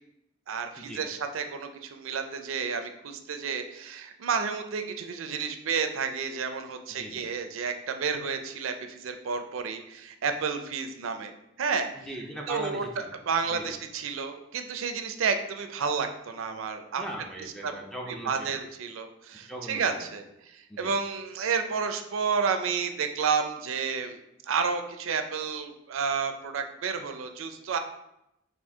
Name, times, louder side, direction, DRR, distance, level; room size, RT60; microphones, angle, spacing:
voice 1, 0.5-11.3 11.6-12.1 12.5-12.8 13.3-17.0 17.6-17.7 18.1-24.2 24.5-27.8, right 5 dB, 75° right, 7 dB, 0.4 m, -31 dB
voice 2, 6.9-7.2 11.9-13.1 13.5-13.7 17.0-18.5 19.5-20.1 20.7-20.9, right 1 dB, ahead, 0 dB, 0.4 m, -39 dB
4.3 x 2.6 x 3.5 m, 0.84 s
head